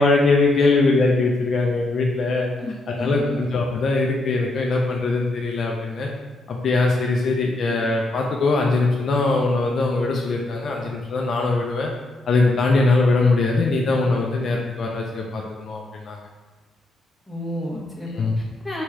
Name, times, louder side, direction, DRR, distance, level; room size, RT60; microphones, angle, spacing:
voice 1, 0.0-2.5 2.9-6.1 6.5-11.9 12.3-16.2 18.2-18.4, left 3 dB, 55° left, 0 dB, 0.5 m, -21 dB
voice 2, 2.6-3.2 17.3-18.1 18.4-18.8, left 1 dB, 10° left, -4 dB, 1.3 m, -32 dB
3.7 x 3.0 x 4.6 m, 1.2 s
cardioid pair, 90°, 0 cm